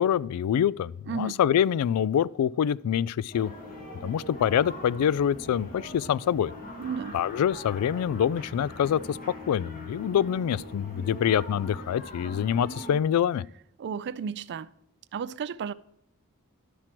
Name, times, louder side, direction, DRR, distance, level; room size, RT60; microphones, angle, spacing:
voice 1, 0.0-3.5 4.0-6.5 7.1-9.2 9.5-13.4, left 9 dB, 85° left, 0.3 m, -25 dB
voice 2, 1.1-1.4 6.8-7.2 13.8-14.7 15.1-15.7, right 6 dB, 50° right, 0.3 m, -33 dB
sound 1, 3.3-13.0, left 1 dB, 40° left, 1.8 m, -42 dB
11.0 x 5.9 x 4.4 m
head